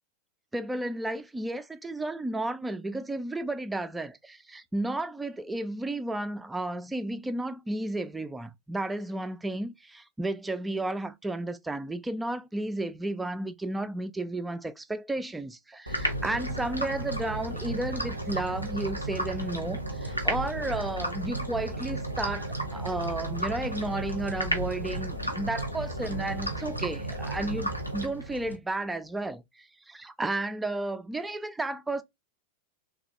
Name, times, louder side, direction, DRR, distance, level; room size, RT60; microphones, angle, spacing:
voice 1, 0.5-32.0, right 2 dB, 10° right, 0.4 m, -33 dB
sound 1, 15.9-28.6, right 1 dB, 90° left, 0.6 m, -33 dB
3.1 x 2.3 x 2.6 m
figure-of-eight pair, 90°, 0 cm